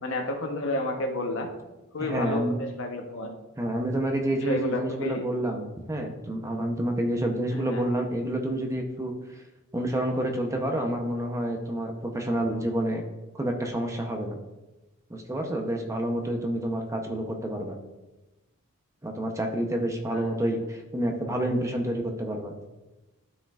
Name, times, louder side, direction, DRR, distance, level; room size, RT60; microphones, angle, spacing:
voice 1, 0.0-1.5 1.9-3.3 4.3-5.2 7.5-7.8 20.1-20.3, left 2 dB, 60° left, 3 dB, 1.0 m, -31 dB
voice 2, 2.0-2.6 3.6-9.1 9.7-13.0 13.3-14.4 15.1-17.8 19.0-22.5, right 1 dB, 15° right, 2 dB, 0.7 m, -28 dB
12.0 x 4.9 x 2.4 m, 1.1 s
head